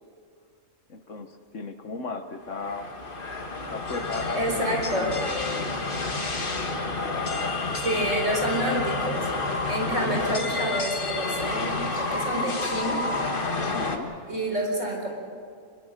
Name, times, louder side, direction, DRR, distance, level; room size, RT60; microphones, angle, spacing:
voice 1, 0.9-2.9 3.7-5.7 6.8-7.6 9.9-10.3 13.6-14.1, left 3 dB, 60° left, 7 dB, 1.6 m, -36 dB
sound 1, 2.4-14.0, left 3 dB, 40° left, 1.9 m, -29 dB
voice 2, 4.3-5.2 7.8-13.0 14.3-15.1, right 1 dB, 60° right, 1 dB, 4.7 m, -28 dB
26.5 x 21.5 x 6.6 m, 2.2 s
omnidirectional pair, 1.5 m